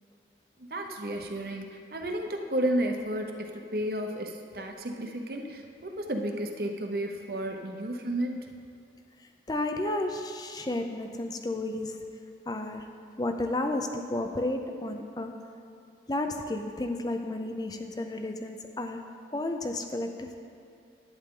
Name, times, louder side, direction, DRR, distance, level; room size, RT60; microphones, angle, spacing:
voice 1, 0.6-8.5, right 1 dB, 55° right, 4 dB, 0.8 m, -32 dB
voice 2, 9.5-12.0 12.5-12.9 13.2-15.5 16.1-20.4, left 2 dB, 20° left, 6 dB, 0.5 m, -32 dB
11.0 x 8.9 x 3.8 m, 2.4 s
head